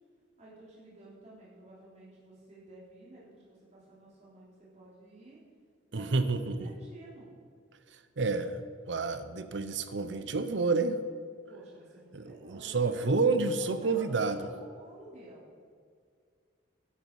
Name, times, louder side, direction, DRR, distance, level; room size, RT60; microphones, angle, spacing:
voice 1, 0.4-5.4 5.9-7.3 11.5-13.1 13.5-15.5, right 2 dB, 35° right, -7 dB, 3.3 m, -51 dB
voice 2, 5.9-6.7 8.2-11.0 12.1-14.4, right 3 dB, 70° right, 11 dB, 0.7 m, -29 dB
12.0 x 11.0 x 4.7 m, 2.1 s
head